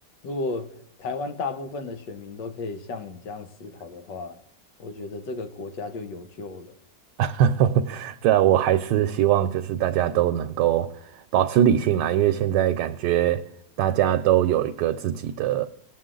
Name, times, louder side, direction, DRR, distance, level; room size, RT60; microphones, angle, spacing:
voice 1, 0.2-0.7 1.0-4.4 4.8-6.7, left 3 dB, 90° left, 1.7 m, -34 dB
voice 2, 7.2-13.4 13.8-15.7, right 11 dB, 80° right, 1.2 m, -22 dB
19.0 x 7.4 x 3.8 m
omnidirectional pair, 1.8 m